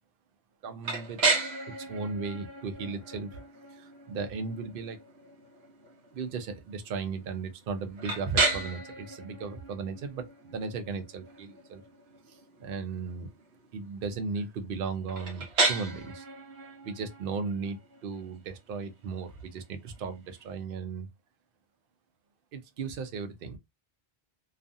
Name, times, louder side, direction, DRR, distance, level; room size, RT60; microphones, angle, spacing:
voice 1, 0.6-1.2 1.8-3.4 3.7-5.0 6.1-11.8 12.3-13.3 13.7-16.2 16.8-21.1 22.5-23.6, right 4 dB, 65° right, 0.7 m, -36 dB
sound 1, 0.8-20.6, right 3 dB, 90° right, 1.0 m, -35 dB
2.4 x 2.4 x 2.5 m
omnidirectional pair, 1.0 m